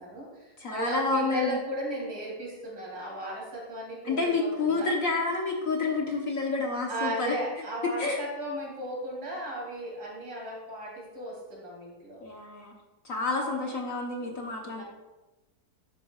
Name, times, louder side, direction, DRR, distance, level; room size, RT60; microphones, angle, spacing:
voice 1, 0.0-4.9 6.9-12.3 14.2-14.3 14.6-14.8, equal, 60° right, -3 dB, 3.4 m, -36 dB
voice 2, 0.6-1.6 4.0-7.3 8.0-8.2 12.2-12.7 13.0-14.8, left 3 dB, 50° left, 0 dB, 1.3 m, -29 dB
12.0 x 9.1 x 2.4 m, 1.1 s
omnidirectional pair, 2.0 m